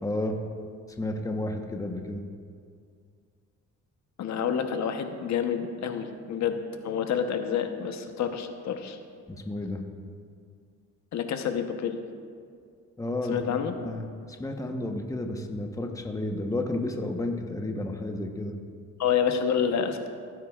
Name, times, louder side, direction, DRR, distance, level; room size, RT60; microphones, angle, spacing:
voice 1, 0.0-0.4 1.0-2.2 9.3-9.8 13.0-14.1 14.4-18.5, left 1 dB, 10° left, 3 dB, 1.0 m, -32 dB
voice 2, 4.2-6.6 6.8-9.0 11.1-12.0 13.3-13.7 19.0-20.1, left 7 dB, 65° left, 7 dB, 1.0 m, -28 dB
18.0 x 9.5 x 2.4 m, 2.2 s
cardioid pair, 90°, 30 cm